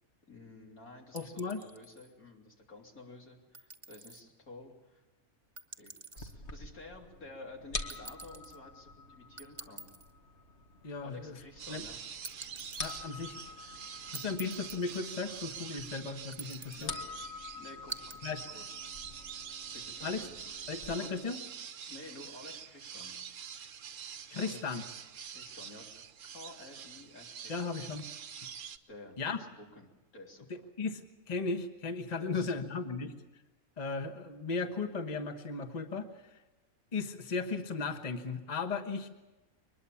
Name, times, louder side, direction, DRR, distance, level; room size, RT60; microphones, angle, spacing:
voice 1, 0.3-5.0 5.8-9.9 11.0-12.0 16.8-18.9 19.7-20.6 20.9-21.3 21.9-23.2 24.4-24.9 25.3-28.0 28.9-30.5 32.2-32.6, left 2 dB, 90° left, 0 dB, 3.9 m, -52 dB
voice 2, 1.1-1.6 10.8-11.4 11.7-11.8 12.8-13.4 14.1-16.9 18.2-18.4 20.0-20.2 20.7-21.4 24.3-24.8 27.5-28.0 29.2-29.4 30.8-33.1 33.8-36.1 36.9-39.1, left 4 dB, 30° left, 6 dB, 1.3 m, -36 dB
sound 1, 1.2-2.1 3.5-4.2 5.6-6.4 7.9-8.6 9.4-10.1 12.2-13.0 14.1-15.0 16.3-16.9 17.9-18.2, right 4 dB, 20° right, 1.3 m, -47 dB
sound 2, 6.2-20.9, left 3 dB, 50° left, 2.0 m, -47 dB
sound 3, 11.6-28.8, right 7 dB, 65° right, 1.3 m, -46 dB
23.5 x 20.5 x 7.1 m, 1.1 s
omnidirectional pair, 1.5 m